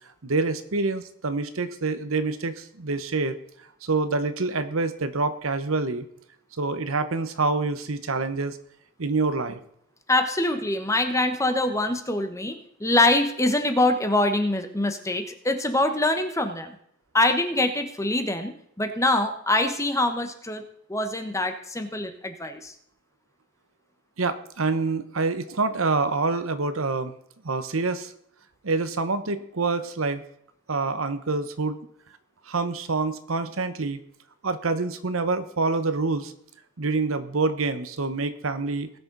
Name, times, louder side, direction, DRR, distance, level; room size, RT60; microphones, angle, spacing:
voice 1, 0.2-3.3 3.8-6.1 6.6-8.6 9.0-9.6 24.2-27.1 27.4-28.1 28.6-30.2 30.7-31.8 32.5-34.0 34.4-36.3 36.8-38.9, right 3 dB, 75° right, 11 dB, 0.9 m, -26 dB
voice 2, 10.1-16.7 17.1-20.6 20.9-22.7, left 2 dB, 15° left, 6 dB, 1.1 m, -24 dB
19.5 x 6.7 x 4.0 m, 0.67 s
head